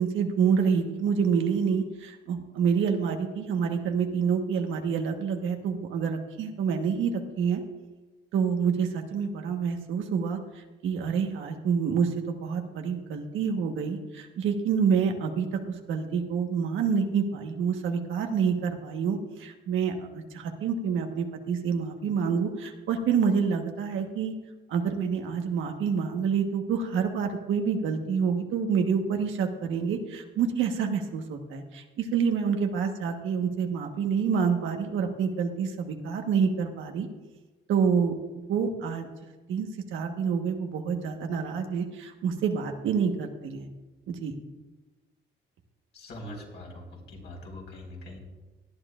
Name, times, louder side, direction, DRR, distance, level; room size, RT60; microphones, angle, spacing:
voice 1, 0.0-7.6 8.3-10.4 10.8-24.3 24.7-37.1 37.7-39.1 39.5-43.7 44.1-44.3, right 6 dB, 85° right, 4 dB, 1.3 m, -27 dB
voice 2, 45.9-48.2, left 1 dB, 60° left, -1 dB, 4.6 m, -42 dB
18.0 x 11.0 x 2.5 m, 1.2 s
cardioid pair, 90°, 20 cm